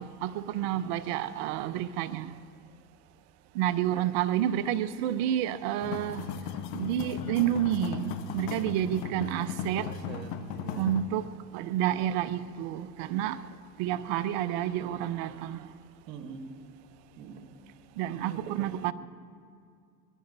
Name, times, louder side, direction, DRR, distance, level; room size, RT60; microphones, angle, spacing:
voice 1, 0.0-2.3 3.6-6.2 6.7-9.9 10.8-11.3 11.5-13.4 13.8-15.6 18.0-18.9, right 11 dB, 55° right, 0.8 m, -29 dB
sound 1, 5.8-11.0, left 7 dB, 65° left, 1.2 m, -37 dB
voice 2, 9.8-11.0 16.1-16.6 17.2-17.4 18.1-18.9, right 6 dB, 85° right, 1.7 m, -44 dB
22.5 x 21.5 x 2.7 m
hypercardioid pair, 100°, 49 cm